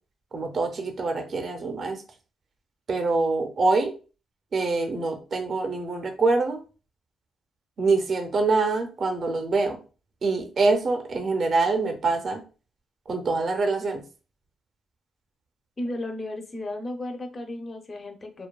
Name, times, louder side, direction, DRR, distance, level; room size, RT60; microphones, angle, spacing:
voice 1, 0.3-2.0 2.9-3.9 4.5-6.6 7.8-9.8 10.2-12.4 13.1-14.0, right 3 dB, 40° right, 5 dB, 0.5 m, -25 dB
voice 2, 15.8-18.5, left 1 dB, 25° left, 5 dB, 0.4 m, -34 dB
2.6 x 2.2 x 2.2 m, 0.34 s
cardioid pair, 155°, 0 cm